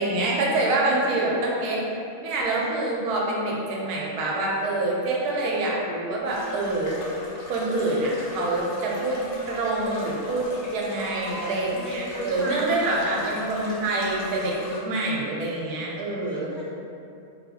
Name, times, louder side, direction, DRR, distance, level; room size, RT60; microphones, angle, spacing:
voice 1, 0.0-7.0 7.5-9.2 9.5-16.5, right 2 dB, 80° right, -3 dB, 1.1 m, -26 dB
sound 1, 6.3-14.8, left 2 dB, 85° left, 1.2 m, -40 dB
voice 2, 11.0-13.4 16.2-16.7, equal, 65° left, -11 dB, 0.4 m, -36 dB
3.1 x 2.7 x 2.7 m, 2.7 s
omnidirectional pair, 1.6 m